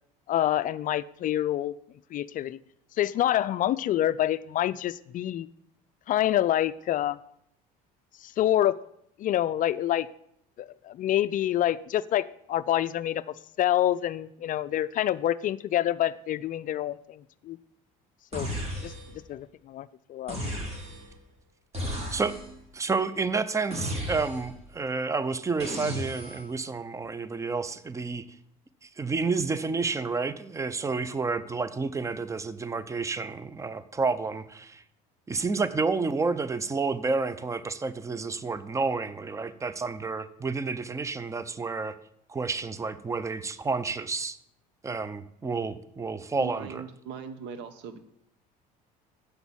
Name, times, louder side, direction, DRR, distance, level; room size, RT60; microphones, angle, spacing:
voice 1, 0.3-1.8 2.1-2.6 3.0-5.5 6.1-7.2 8.2-8.8 9.2-10.1 10.6-13.2 13.6-17.6 18.3-18.5 18.8-18.9 19.7-20.4, left 12 dB, 45° left, 15 dB, 0.4 m, -27 dB
sound 1, 18.3-19.2 20.3-21.1 21.7-22.6 23.7-24.6 25.6-26.5, equal, 30° right, 3.5 m, -35 dB
voice 2, 22.7-28.2 28.8-34.8 35.3-42.0 42.3-44.4 44.8-46.8, right 4 dB, 15° right, 15 dB, 0.6 m, -30 dB
voice 3, 46.4-48.0, right 7 dB, 65° right, 11 dB, 1.1 m, -40 dB
8.1 x 6.0 x 7.2 m, 0.72 s
supercardioid pair, 85°, 20 cm